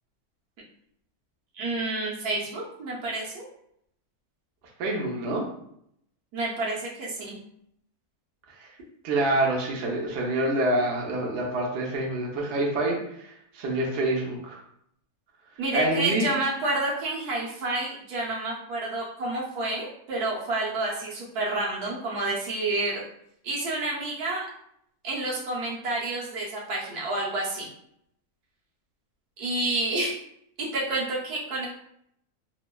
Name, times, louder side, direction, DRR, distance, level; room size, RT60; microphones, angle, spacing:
voice 1, 1.5-3.4 6.3-7.4 15.6-23.0 23.4-24.5 25.0-27.7 29.4-30.2 30.6-31.7, right 2 dB, 80° right, -5 dB, 1.3 m, -29 dB
voice 2, 4.8-5.4 8.6-8.7 9.0-14.6 15.7-16.3, right 1 dB, 60° right, -2 dB, 0.8 m, -27 dB
3.1 x 2.1 x 2.2 m, 0.72 s
omnidirectional pair, 1.6 m